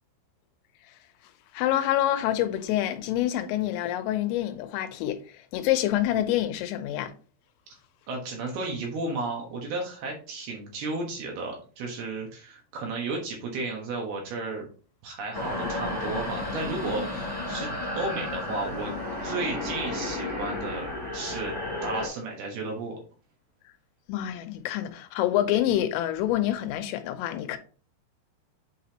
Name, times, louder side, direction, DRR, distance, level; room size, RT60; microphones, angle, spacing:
voice 1, 1.5-7.1 24.1-27.6, left 12 dB, 85° left, 3.4 m, -27 dB
voice 2, 8.1-14.6 15.0-18.9 19.2-21.5 21.8-23.0, right 3 dB, 65° right, 2.8 m, -33 dB
sound 1, 15.3-22.1, left 2 dB, 5° left, 2.3 m, -32 dB
7.8 x 5.1 x 2.9 m
omnidirectional pair, 5.7 m